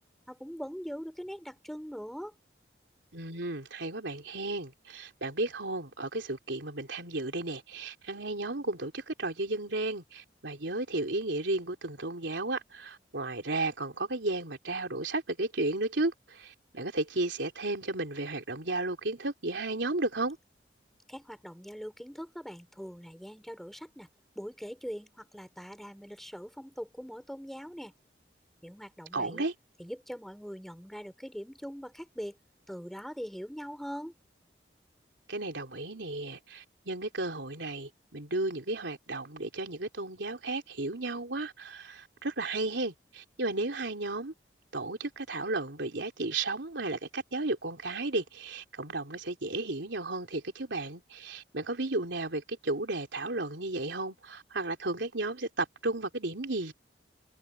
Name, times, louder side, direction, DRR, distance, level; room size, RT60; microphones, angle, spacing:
voice 1, 0.0-2.3 21.1-24.1 24.3-27.9 28.6-29.5 29.8-32.4 32.7-34.1, equal, ahead, 4.6 m, -42 dB
voice 2, 3.1-20.4 29.1-29.5 35.3-44.3 44.7-56.7, right 2 dB, 85° right, 3.6 m, -34 dB
head